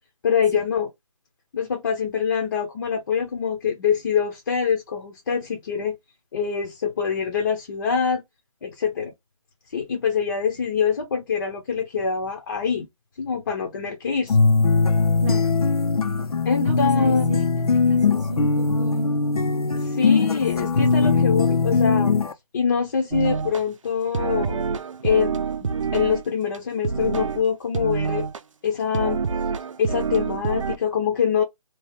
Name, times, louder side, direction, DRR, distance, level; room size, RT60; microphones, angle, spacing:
voice 1, 0.2-0.9 1.5-6.0 6.3-8.2 8.6-9.1 9.7-12.9 13.2-14.4 16.4-17.3 19.7-22.2 22.5-24.6 25.0-28.3 28.6-29.2 29.8-31.4, left 6 dB, 35° left, 0.6 m, -24 dB
sound 1, 14.3-22.3, left 4 dB, 80° left, 0.6 m, -20 dB
voice 2, 15.2-15.6 16.6-17.4 17.7-19.2 20.6-21.3, right 5 dB, 30° right, 0.7 m, -35 dB
sound 2, 23.1-23.6 24.1-26.2 26.5-26.6 26.8-27.4 27.7-28.4 28.9-30.8, right 5 dB, 60° right, 0.5 m, -26 dB
2.9 x 2.3 x 3.4 m
figure-of-eight pair, 155°, 19 cm